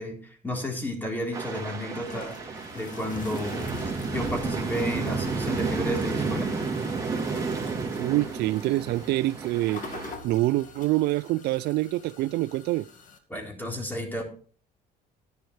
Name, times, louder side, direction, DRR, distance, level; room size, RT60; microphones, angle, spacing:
voice 1, 0.0-3.7 4.1-6.5 13.3-14.2, equal, 10° left, 4.0 m, -32 dB
sound 1, 1.3-10.1, right 4 dB, 20° right, 3.0 m, -31 dB
sound 2, 1.5-13.2, left 4 dB, 50° left, 2.0 m, -47 dB
voice 2, 8.0-9.8 10.2-12.9, right 17 dB, 75° right, 0.4 m, -26 dB
12.5 x 10.5 x 3.3 m
cardioid pair, 110°, 17 cm